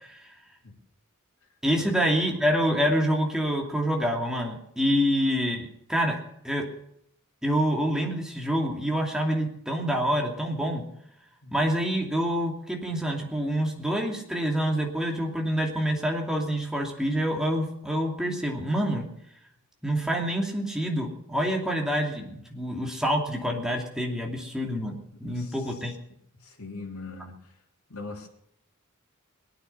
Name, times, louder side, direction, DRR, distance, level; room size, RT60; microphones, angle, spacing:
voice 1, 1.6-6.2 6.4-6.6 7.4-10.8 11.5-19.0 19.8-25.9, equal, 5° right, -1 dB, 2.6 m, -27 dB
voice 2, 25.2-25.6 26.4-27.3 27.9-28.3, left 3 dB, 90° left, -2 dB, 3.3 m, -40 dB
22.5 x 9.3 x 6.8 m, 0.74 s
head